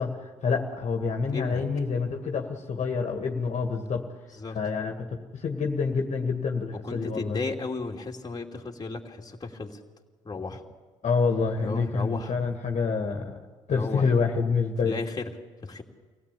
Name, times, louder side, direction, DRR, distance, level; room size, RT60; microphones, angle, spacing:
voice 1, 0.0-4.0 4.5-5.1 5.3-7.4 11.0-13.4 13.7-15.0, left 5 dB, 45° left, 3 dB, 2.1 m, -27 dB
voice 2, 1.3-1.6 4.4-4.6 6.8-9.8 10.2-10.6 11.6-12.3 13.7-14.0 14.8-15.2 15.6-15.8, left 3 dB, 25° left, 1 dB, 2.7 m, -34 dB
24.5 x 17.0 x 8.5 m, 1.4 s
hypercardioid pair, 55°, 16 cm